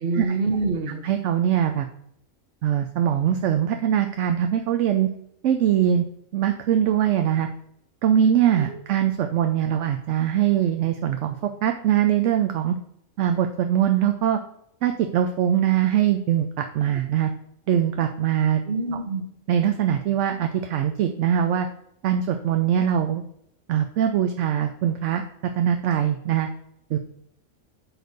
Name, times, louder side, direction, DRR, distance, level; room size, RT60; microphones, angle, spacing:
voice 1, 0.0-1.0 8.5-8.8 18.7-19.2, right 3 dB, 45° right, 5 dB, 1.2 m, -26 dB
voice 2, 1.0-1.9 2.6-5.1 5.4-6.1 6.3-7.5 8.0-12.8 13.2-14.4 14.8-17.3 17.7-18.6 19.5-21.7 22.0-23.2 23.7-25.2 25.5-26.5 26.9-27.0, right 10 dB, 70° right, 6 dB, 0.9 m, -22 dB
8.8 x 3.3 x 6.5 m, 0.73 s
omnidirectional pair, 1.4 m